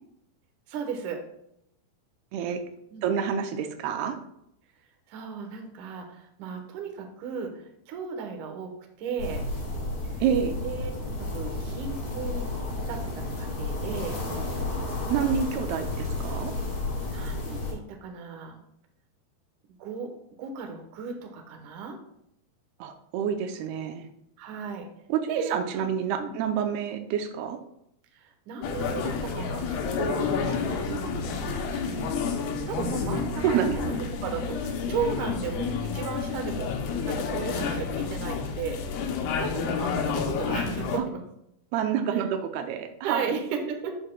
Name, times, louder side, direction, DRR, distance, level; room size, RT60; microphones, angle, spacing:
voice 1, 0.7-1.2 2.9-3.1 5.1-8.7 9.0-9.4 10.6-12.5 12.8-14.2 15.9-16.0 17.1-18.6 19.8-20.1 20.4-22.0 24.4-24.9 25.3-25.8 26.2-26.3 28.1-32.1 32.3-36.7 37.0-39.0 39.4-41.2 42.1-42.3 43.0-44.0, right 6 dB, 65° right, 4 dB, 2.3 m, -35 dB
voice 2, 3.0-4.2 10.2-10.5 15.1-16.5 22.8-24.1 25.1-27.6 33.4-34.1 41.0-41.1 41.7-43.3, right 8 dB, 90° right, 6 dB, 2.7 m, -28 dB
sound 1, 9.2-17.7, left 2 dB, 50° left, 4.1 m, -32 dB
sound 2, 28.6-41.0, left 5 dB, 85° left, 2.9 m, -30 dB
11.0 x 7.7 x 2.3 m, 0.76 s
omnidirectional pair, 4.4 m